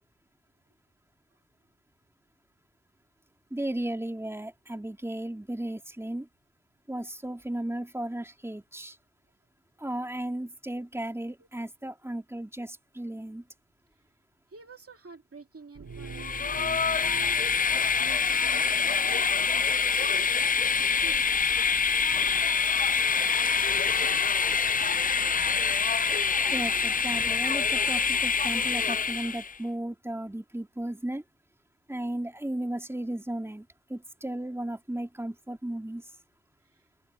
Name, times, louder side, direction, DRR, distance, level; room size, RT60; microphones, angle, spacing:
voice 1, 3.5-6.3 6.9-9.0 9.8-13.4 26.5-31.2 31.9-36.0, right 1 dB, 10° right, 3.0 m, -35 dB
voice 2, 14.5-21.5 36.6-36.9, right 4 dB, 50° right, 2.6 m, -50 dB
sound 1, 15.7-19.5, right 5 dB, 75° right, 4.1 m, -44 dB
Train, 16.1-29.5, left 5 dB, 30° left, 0.4 m, -25 dB
open air
wide cardioid pair, 110°, 29 cm